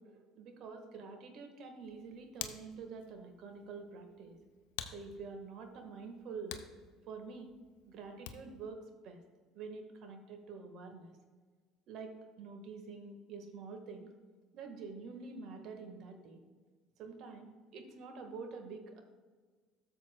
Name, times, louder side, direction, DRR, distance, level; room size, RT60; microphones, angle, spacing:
voice 1, 0.0-4.4 4.9-6.6 7.1-7.5 7.8-9.2 9.5-11.1 11.9-14.1 14.5-16.4 17.0-19.0, right 4 dB, 60° right, 5 dB, 1.4 m, -47 dB
Hands, 1.8-8.7, left 10 dB, 80° left, 0.6 m, -50 dB
13.0 x 7.1 x 2.2 m, 1.5 s
supercardioid pair, 80°, 0 cm